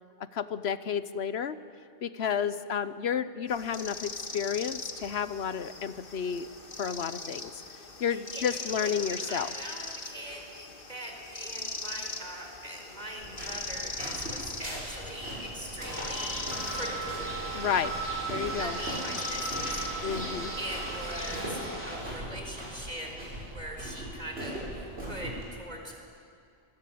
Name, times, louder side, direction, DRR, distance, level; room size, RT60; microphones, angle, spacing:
voice 1, 0.3-1.6 2.0-6.5 6.8-7.6 8.0-9.5 17.5-17.9 18.3-18.8 20.0-20.5, left 7 dB, 80° left, 14 dB, 1.2 m, -31 dB
sound 1, 3.5-21.4, left 3 dB, 60° left, 1.9 m, -41 dB
voice 2, 8.1-17.1 18.6-19.8 20.6-21.6 21.9-23.1 23.5-26.0, right 1 dB, 40° right, 2 dB, 4.2 m, -41 dB
sound 2, 13.2-25.4, right 1 dB, 75° right, 7.1 m, -40 dB
sound 3, 15.8-22.0, right 3 dB, 10° left, 4.2 m, -36 dB
25.5 x 22.0 x 8.6 m, 2.5 s
omnidirectional pair, 1.1 m